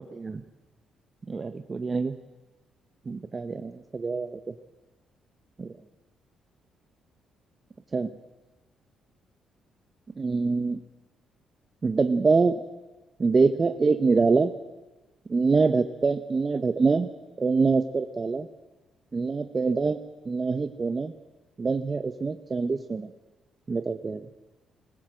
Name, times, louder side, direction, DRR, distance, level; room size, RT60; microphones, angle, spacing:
voice 1, 1.3-2.1 3.1-4.4 5.6-5.7 7.9-8.1 10.2-10.8 11.8-12.6 13.2-14.5 15.3-17.1 17.4-18.5 19.1-20.0 20.2-21.1 21.6-23.1 23.7-24.2, right 4 dB, 30° right, 7 dB, 1.1 m, -25 dB
21.5 x 19.0 x 7.8 m, 1.2 s
cardioid pair, 90°, 0 cm